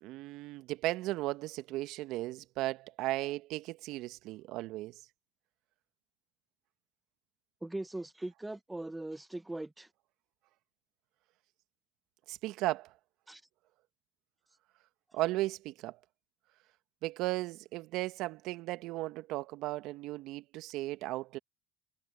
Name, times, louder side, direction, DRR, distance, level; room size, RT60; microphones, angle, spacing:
voice 1, 0.0-4.9 12.3-12.9 15.1-16.0 17.0-21.4, right 18 dB, 65° right, 1.5 m, -36 dB
voice 2, 7.6-9.9 13.3-13.4, right 2 dB, 10° right, 1.0 m, -40 dB
hypercardioid pair, 70°, 0 cm